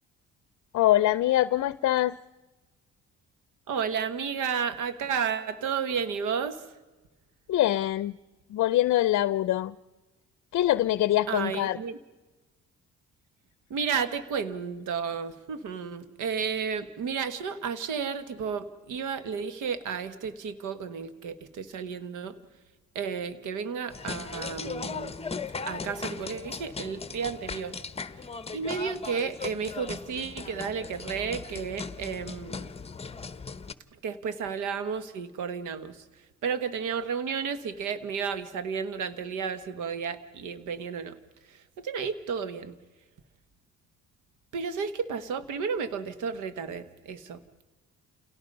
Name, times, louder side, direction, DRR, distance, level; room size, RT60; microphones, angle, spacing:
voice 1, 0.7-2.2 7.5-8.1 8.5-9.7 10.5-11.8, left 14 dB, 65° left, 17 dB, 0.6 m, -24 dB
voice 2, 3.7-6.7 11.3-12.0 13.7-22.4 22.9-25.2 25.7-27.8 28.5-32.7 34.0-41.2 41.4-42.7 44.5-47.4, right 6 dB, 85° right, 12 dB, 1.4 m, -32 dB
sound 1, 23.9-33.7, left 5 dB, 20° left, 0.9 m, -38 dB
29.0 x 17.5 x 5.4 m, 1.2 s
cardioid pair, 90°, 30 cm